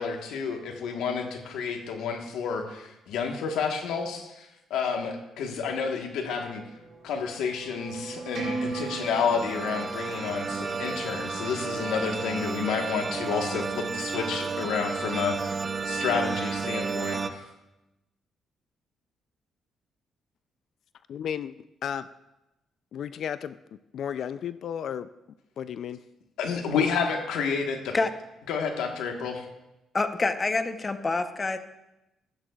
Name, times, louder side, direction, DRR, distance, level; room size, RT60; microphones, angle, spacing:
voice 1, 0.0-6.6 7.0-15.6 15.8-17.5 26.4-27.9 28.5-29.4, left 6 dB, 85° left, 4 dB, 1.3 m, -30 dB
sound 1, 6.1-12.1, right 4 dB, 65° right, 2.4 m, -39 dB
sound 2, 8.5-17.3, right 4 dB, 35° right, 0.5 m, -32 dB
voice 2, 21.1-21.5 21.8-22.0 22.9-23.6 23.9-25.1 25.6-26.0, left 8 dB, 65° left, 14 dB, 0.3 m, -33 dB
voice 3, 29.9-31.6, left 3 dB, 30° left, 9 dB, 0.8 m, -26 dB
14.0 x 12.0 x 2.3 m, 0.94 s
cardioid pair, 90°, 0 cm